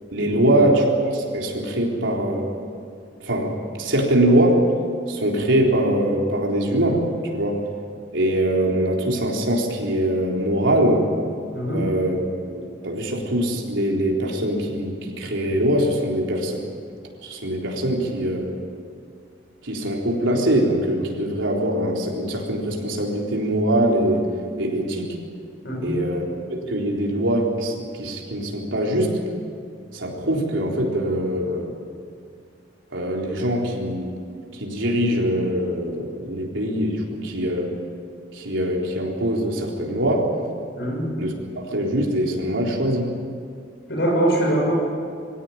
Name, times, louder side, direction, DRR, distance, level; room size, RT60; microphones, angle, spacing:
voice 1, 0.1-2.5 3.2-4.6 5.1-7.0 7.3-7.6 8.1-11.1 11.7-12.2 12.5-16.6 17.2-18.6 19.6-24.3 24.6-25.1 25.8-26.2 26.5-29.2 29.9-31.7 32.9-34.1 34.6-37.8 38.3-40.3 41.2-43.1, right 1 dB, 85° right, -1 dB, 4.0 m, -22 dB
voice 2, 11.5-11.9 25.6-26.0 40.8-41.1 43.9-44.7, right 1 dB, 60° left, -2 dB, 6.2 m, -23 dB
22.5 x 17.0 x 9.6 m, 2.3 s
head